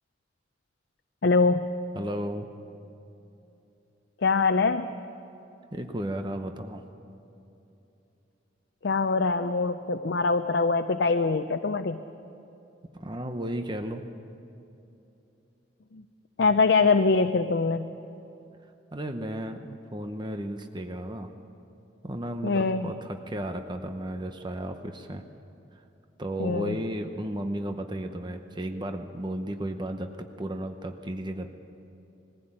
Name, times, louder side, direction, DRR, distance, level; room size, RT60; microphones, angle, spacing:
voice 1, 1.2-1.7 4.2-5.0 8.8-12.0 15.9-16.0 16.4-17.9 22.4-22.9 26.4-26.8, left 4 dB, 65° left, 8 dB, 0.6 m, -23 dB
voice 2, 1.9-2.5 5.7-6.8 12.9-14.0 18.9-21.3 22.0-25.2 26.2-31.5, right 1 dB, 25° right, 6 dB, 0.8 m, -34 dB
20.5 x 15.5 x 8.8 m, 2.9 s
head